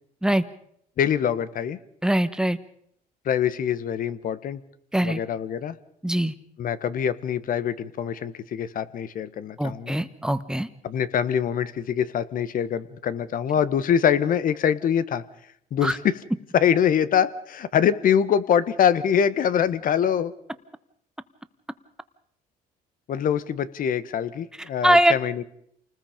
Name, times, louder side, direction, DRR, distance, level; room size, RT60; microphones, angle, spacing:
voice 1, 1.0-1.8 3.2-4.6 5.0-5.7 6.6-10.0 10.8-15.2 15.7-16.1 16.5-20.3 23.1-25.4, left 8 dB, 55° left, 14 dB, 1.3 m, -24 dB
voice 2, 2.0-2.6 4.9-5.2 6.0-6.3 9.6-10.7 15.8-16.0 24.8-25.2, right 1 dB, 5° right, 11 dB, 1.2 m, -22 dB
28.5 x 20.0 x 5.2 m, 0.70 s
cardioid pair, 110°, 17 cm